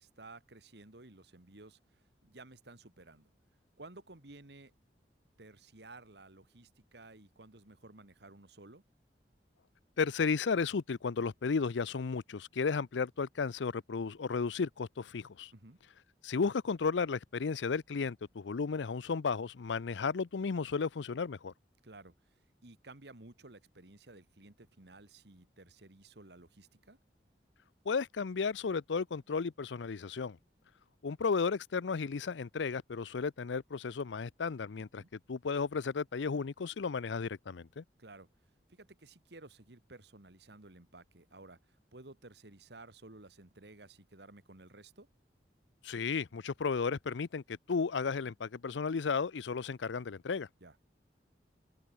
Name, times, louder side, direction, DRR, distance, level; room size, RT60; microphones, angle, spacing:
voice 1, 0.0-1.8 2.2-3.3 3.8-4.7 5.4-8.8 15.5-15.8 21.8-22.1 22.6-27.0 35.0-35.1 38.0-38.3 38.7-41.6 41.9-45.1 50.6-50.8, right 2 dB, 70° right, 2.0 m, -54 dB
voice 2, 10.0-15.5 16.2-21.5 27.9-30.4 31.0-35.0 35.3-37.8 45.8-50.5, left 5 dB, 90° left, 0.5 m, -34 dB
open air
head